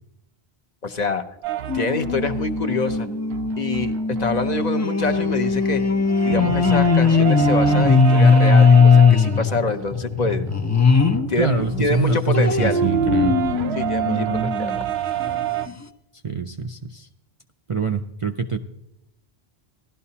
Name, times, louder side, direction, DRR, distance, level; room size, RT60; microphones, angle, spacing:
voice 1, 0.8-1.2 1.7-3.1 3.6-3.9 4.2-5.8 6.2-10.5 11.3-12.8 13.8-14.3 14.6-14.7, left 3 dB, 45° left, 8 dB, 0.8 m, -25 dB
sound 1, 1.4-4.7 5.0-15.7, right 12 dB, 85° right, 0.9 m, -29 dB
sound 2, 1.7-11.3 11.7-14.8 15.3-15.4 15.7-15.8, left 4 dB, 25° left, 0.4 m, -19 dB
voice 2, 11.4-13.4 14.0-14.5 16.2-17.1 17.7-18.6, right 4 dB, 45° right, 5 dB, 0.4 m, -24 dB
17.0 x 12.5 x 2.8 m, 0.85 s
omnidirectional pair, 1.0 m